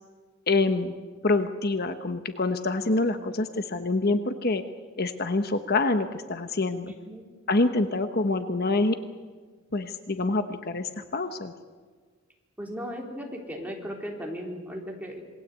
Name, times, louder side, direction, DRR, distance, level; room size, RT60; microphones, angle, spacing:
voice 1, 0.5-1.0 1.2-4.6 5.0-6.9 7.5-9.0 9.7-11.5, left 2 dB, 50° left, 8 dB, 1.1 m, -26 dB
voice 2, 6.8-7.2 12.6-15.3, equal, 10° right, 0 dB, 3.9 m, -37 dB
27.0 x 21.0 x 8.4 m, 1.5 s
head